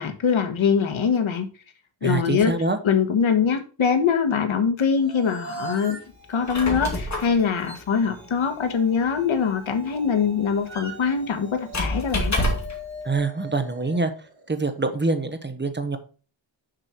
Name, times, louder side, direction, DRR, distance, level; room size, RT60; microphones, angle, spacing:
voice 1, 0.0-1.5 2.0-2.5 2.8-6.0 6.3-12.4, left 6 dB, 85° left, 7 dB, 1.4 m, -23 dB
voice 2, 2.0-2.8 13.0-14.1 14.5-16.0, right 3 dB, 25° right, 8 dB, 1.0 m, -25 dB
sound 1, 4.9-15.1, right 1 dB, 55° right, 2.1 m, -42 dB
Squeak, 6.2-12.9, left 1 dB, 35° left, 2.5 m, -30 dB
6.5 x 6.2 x 4.4 m, 0.36 s
wide cardioid pair, 120°, 46 cm